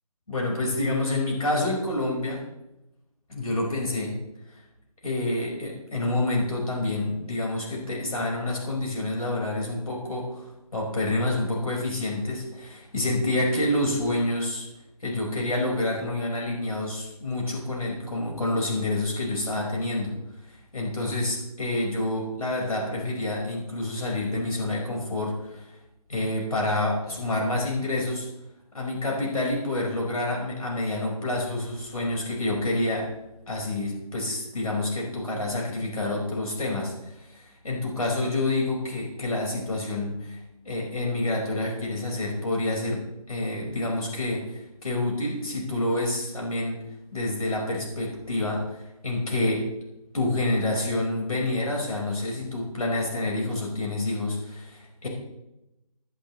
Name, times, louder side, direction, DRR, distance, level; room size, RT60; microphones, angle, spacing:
voice 1, 0.3-2.4 3.3-4.2 4.5-4.6 5.0-14.7 15.0-20.1 20.4-25.8 26.1-28.3 28.7-33.1 33.5-40.4 40.6-46.8 47.1-49.6 50.1-55.1, left 2 dB, 70° left, -2 dB, 5.1 m, -28 dB
20.5 x 11.5 x 3.2 m, 0.91 s
figure-of-eight pair, 160°, 19 cm